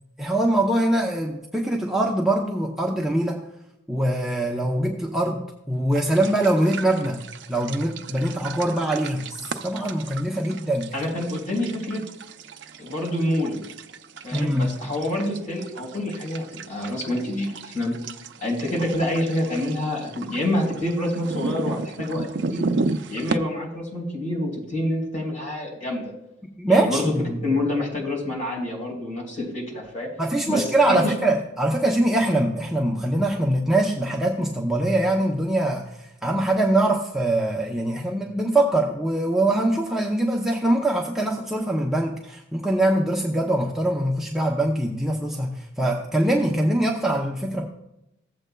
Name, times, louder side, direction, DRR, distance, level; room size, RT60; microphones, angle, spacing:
voice 1, 0.2-3.4 3.9-5.4 5.7-7.2 7.5-10.9 14.3-14.7 26.6-27.5 30.2-35.8 36.2-47.7, right 1 dB, ahead, -2 dB, 0.7 m, -23 dB
sound 1, 5.9-23.4, right 3 dB, 65° right, 0.5 m, -34 dB
voice 2, 10.9-12.0 12.8-13.6 14.2-18.0 18.4-22.7 23.1-26.0 26.7-27.1 27.4-30.1 30.5-31.1, left 1 dB, 40° left, -2 dB, 3.8 m, -27 dB
15.5 x 7.8 x 2.3 m, 0.86 s
head